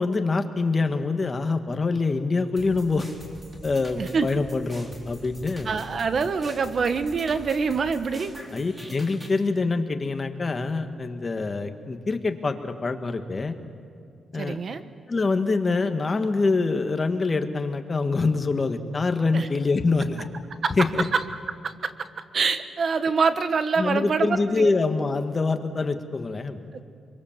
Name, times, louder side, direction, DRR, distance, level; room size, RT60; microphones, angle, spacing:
voice 1, 0.0-3.1 3.6-5.7 8.5-13.6 14.3-14.6 15.1-20.3 20.8-21.1 23.8-26.6, left 3 dB, 30° left, 7 dB, 1.7 m, -25 dB
sound 1, 2.6-9.4, right 1 dB, 20° right, 4.0 m, -44 dB
voice 2, 4.0-4.4 5.6-8.3 14.3-14.8 19.3-19.5 20.6-20.7 21.1-21.2 21.6-22.1 22.3-24.7, right 5 dB, 50° right, 10 dB, 1.3 m, -25 dB
25.5 x 24.0 x 7.5 m, 2.4 s
cardioid pair, 105°, 0 cm